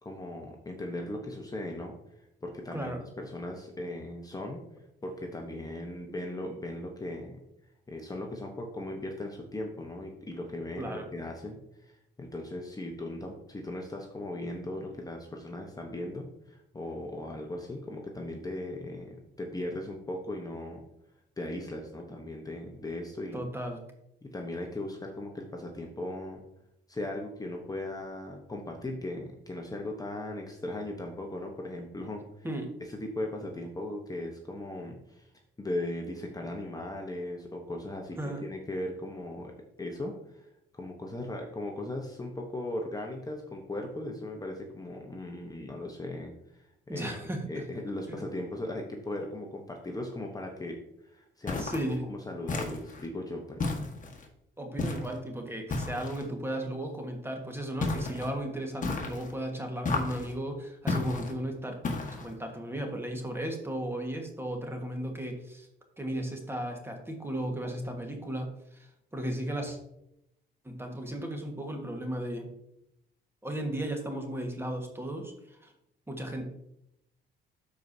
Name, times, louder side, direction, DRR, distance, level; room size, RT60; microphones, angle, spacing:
voice 1, 0.0-1.9 2.4-4.6 5.0-7.4 7.9-20.8 21.4-23.4 24.3-26.4 26.9-32.5 32.9-35.3 35.6-39.5 39.8-40.5 40.7-47.2 47.5-51.7 52.1-53.8, left 1 dB, 20° left, 1 dB, 1.0 m, -38 dB
voice 2, 2.7-3.0 10.8-11.1 23.3-23.8 32.4-32.7 38.2-38.4 46.9-47.7 51.6-52.1 54.6-61.8 62.1-65.7 66.0-69.8 70.6-72.5 73.4-75.7 76.1-76.5, right 1 dB, 10° right, 3 dB, 1.5 m, -35 dB
sound 1, 51.5-51.9 52.5-53.1 53.6-54.3 54.8-55.2 55.7-56.3 57.8-58.3 58.8-59.3 59.8-60.3 60.9-61.3 61.8-62.3, left 3 dB, 40° left, 1.6 m, -33 dB
13.0 x 4.6 x 2.8 m, 0.81 s
cardioid pair, 90°, 20 cm